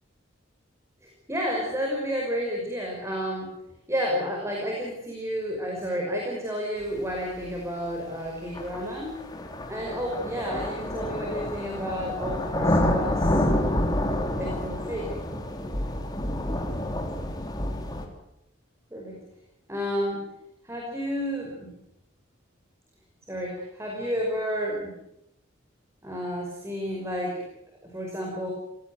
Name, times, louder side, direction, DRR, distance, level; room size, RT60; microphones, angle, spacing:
voice 1, 1.0-3.5 3.9-9.2 9.7-13.4 14.4-15.1 18.9-19.2 19.7-20.2 20.6-21.7 23.3-24.9 26.0-27.4 27.8-28.5, equal, 15° right, -1 dB, 5.5 m, -31 dB
sound 1, 7.5-7.6 8.5-18.0, left 1 dB, 20° left, 3.6 m, -28 dB
27.0 x 18.0 x 8.1 m, 0.83 s
head